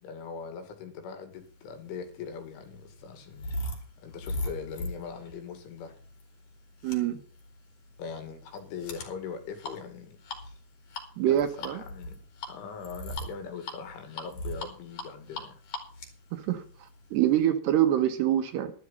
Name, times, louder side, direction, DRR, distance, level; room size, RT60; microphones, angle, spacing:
voice 1, 0.0-3.5 4.0-6.0 8.0-10.2 11.2-12.2 12.5-15.6, left 6 dB, 75° left, 4.8 m, -41 dB
sound 1, 1.8-17.4, left 1 dB, 50° left, 4.8 m, -40 dB
voice 2, 6.8-7.2 11.2-11.8 16.3-18.7, right 12 dB, 70° right, 3.0 m, -26 dB
12.5 x 12.5 x 5.5 m
omnidirectional pair, 5.5 m